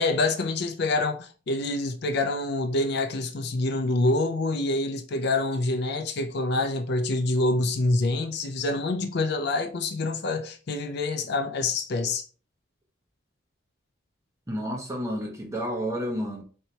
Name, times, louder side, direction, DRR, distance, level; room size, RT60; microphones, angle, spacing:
voice 1, 0.0-12.2, left 2 dB, 55° left, 0.5 m, -26 dB
voice 2, 14.5-16.4, equal, 15° right, 1.0 m, -30 dB
4.2 x 2.8 x 3.2 m
head